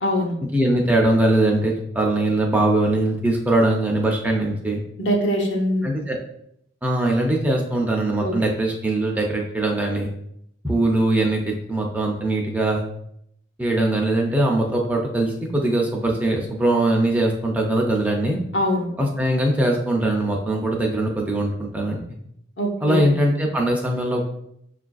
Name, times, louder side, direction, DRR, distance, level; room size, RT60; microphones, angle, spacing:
voice 1, 0.0-0.4 5.0-5.9 8.2-8.3 18.5-18.9 22.6-23.1, equal, 75° left, 1 dB, 0.8 m, -22 dB
voice 2, 0.5-4.8 5.8-6.2 6.8-10.1 10.6-12.8 13.6-18.4 19.0-22.0 22.8-24.3, right 1 dB, 10° right, -1 dB, 0.4 m, -21 dB
6.3 x 2.4 x 2.3 m, 0.74 s
head